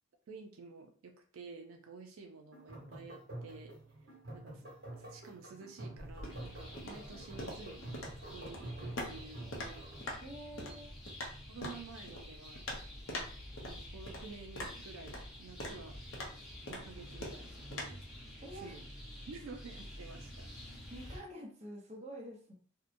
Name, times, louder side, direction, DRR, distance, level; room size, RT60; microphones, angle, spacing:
voice 1, 0.3-3.7 4.3-7.9 8.3-9.9 11.5-12.6 13.6-16.0 16.7-18.0 18.5-18.9 19.3-20.5, right 4 dB, 85° right, 4 dB, 0.4 m, -51 dB
sound 1, 2.5-10.1, right 1 dB, 55° right, 1.1 m, -48 dB
sound 2, 6.0-17.8, left 1 dB, 65° left, 0.7 m, -45 dB
sound 3, 6.3-21.2, left 1 dB, ahead, 0.9 m, -50 dB
voice 2, 10.2-10.9 18.4-18.8 20.9-22.5, equal, 35° right, -1 dB, 0.7 m, -47 dB
2.7 x 2.1 x 2.5 m, 0.44 s
head